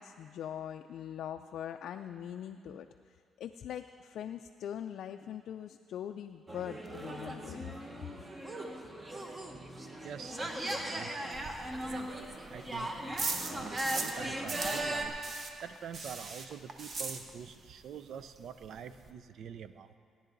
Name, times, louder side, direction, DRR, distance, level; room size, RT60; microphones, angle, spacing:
voice 1, 0.0-2.9 3.4-7.8, left 9 dB, 75° left, 6 dB, 0.4 m, -42 dB
sound 1, 6.5-15.1, right 1 dB, 25° right, 1.2 m, -38 dB
voice 2, 10.0-11.3 11.8-13.0 13.4-15.3 15.6-20.0, right 7 dB, 70° right, 12 dB, 0.5 m, -46 dB
sound 2, 11.3-14.2 14.5-17.7 17.9-18.0 18.4-18.5 18.6-19.1, right 4 dB, 50° right, 1.0 m, -39 dB
17.0 x 10.0 x 4.0 m, 2.3 s
cardioid pair, 90°, 0 cm